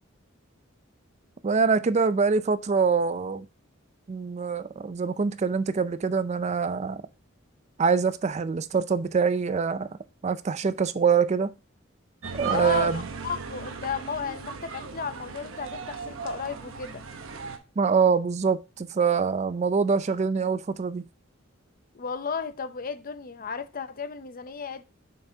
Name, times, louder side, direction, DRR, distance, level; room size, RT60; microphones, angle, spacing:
voice 1, 1.4-3.5 4.1-7.0 7.8-9.9 10.2-11.5 12.3-13.0 17.8-21.0, right 5 dB, 35° right, 0.4 m, -24 dB
sound 1, 12.2-17.6, right 5 dB, 80° right, 0.9 m, -37 dB
voice 2, 12.5-17.0 21.9-24.8, left 6 dB, 45° left, 0.6 m, -34 dB
7.3 x 5.6 x 2.7 m
head